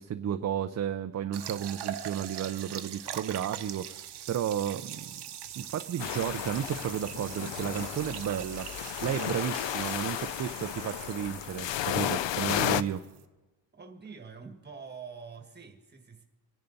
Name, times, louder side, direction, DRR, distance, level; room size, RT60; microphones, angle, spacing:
voice 1, 0.0-5.3 5.6-13.0, right 9 dB, 40° right, 8 dB, 0.4 m, -33 dB
sound 1, 1.3-13.2, right 10 dB, 60° right, 0.9 m, -42 dB
sound 2, 6.0-12.8, left 12 dB, 75° left, 0.6 m, -33 dB
voice 2, 13.7-16.2, right 5 dB, 20° right, 4 dB, 1.5 m, -46 dB
25.5 x 10.5 x 4.0 m, 1.1 s
wide cardioid pair, 170°, 45 cm